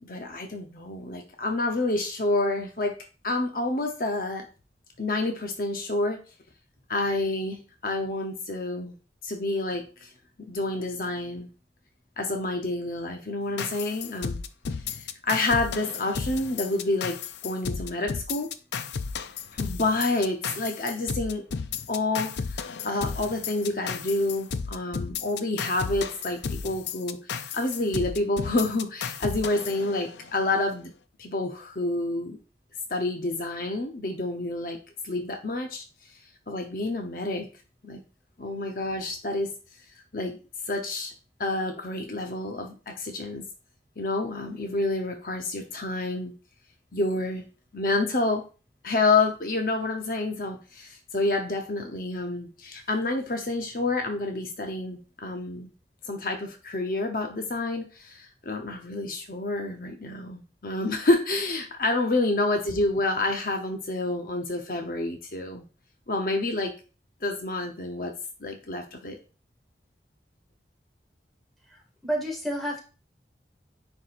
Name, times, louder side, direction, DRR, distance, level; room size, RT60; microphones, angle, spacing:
voice 1, 0.0-3.0 3.2-4.5 5.0-6.2 6.9-8.9 9.2-10.1 10.5-11.5 12.2-14.4 14.9-18.5 19.5-21.4 21.9-30.9 31.2-32.4 32.9-34.8 35.0-35.8 36.5-37.5 37.8-38.0 38.4-39.5 40.1-40.4 40.7-41.1 41.4-43.5 44.0-46.3 46.9-47.4 47.7-48.4 48.8-55.7 56.1-65.6 66.1-66.7 67.2-68.1 68.4-69.2, left 2 dB, 50° left, 3 dB, 0.9 m, -28 dB
sound 1, 13.6-30.5, left 5 dB, 75° left, 0.5 m, -34 dB
voice 2, 71.7-72.8, equal, ahead, -1 dB, 2.0 m, -31 dB
9.7 x 4.8 x 2.6 m, 0.33 s
head